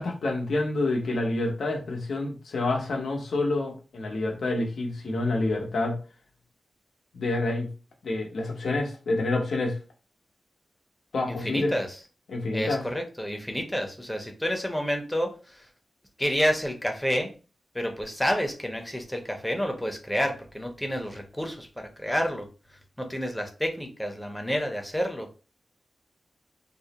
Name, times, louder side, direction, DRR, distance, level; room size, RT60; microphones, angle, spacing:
voice 1, 0.0-6.0 7.1-7.7 8.0-9.8 11.1-11.7 12.3-12.8, left 2 dB, 85° left, 1 dB, 0.6 m, -28 dB
voice 2, 11.3-11.9 12.5-15.7 16.2-17.3 17.7-22.5 23.0-25.3, equal, 5° left, 3 dB, 0.6 m, -29 dB
2.4 x 2.0 x 2.8 m, 0.34 s
wide cardioid pair, 80°, 0 cm